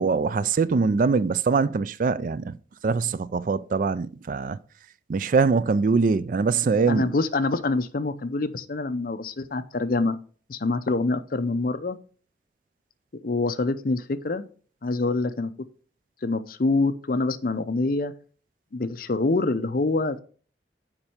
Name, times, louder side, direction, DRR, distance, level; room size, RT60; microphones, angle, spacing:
voice 1, 0.0-2.5 2.8-4.6 5.1-7.1, right 4 dB, 45° right, 0.3 m, -23 dB
voice 2, 6.9-10.2 10.5-12.0 13.2-14.4 14.8-15.5 16.2-18.1 18.7-20.2, left 3 dB, 50° left, 0.6 m, -25 dB
7.2 x 5.3 x 5.0 m
head